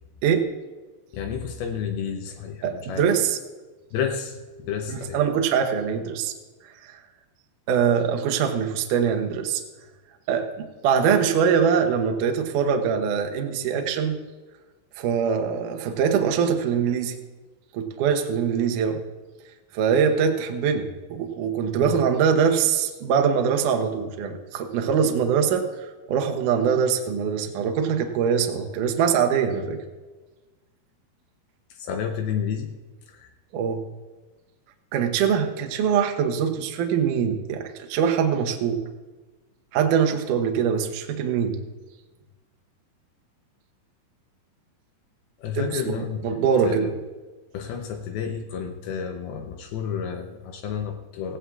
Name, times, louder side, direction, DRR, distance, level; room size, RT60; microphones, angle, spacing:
voice 1, 1.1-3.1 3.9-5.2 21.8-21.9 31.7-32.7 33.1-33.3 45.4-46.9 47.5-51.4, left 7 dB, 80° left, 5 dB, 2.3 m, -31 dB
voice 2, 2.6-3.4 4.9-6.3 6.8-7.0 7.7-9.6 10.3-14.2 15.0-17.2 17.7-19.0 19.7-29.8 33.5-33.9 34.9-38.8 39.7-41.6 45.5-45.9 46.2-46.9, right 7 dB, 80° right, 4 dB, 1.8 m, -23 dB
17.0 x 16.0 x 2.4 m, 1.2 s
omnidirectional pair, 5.1 m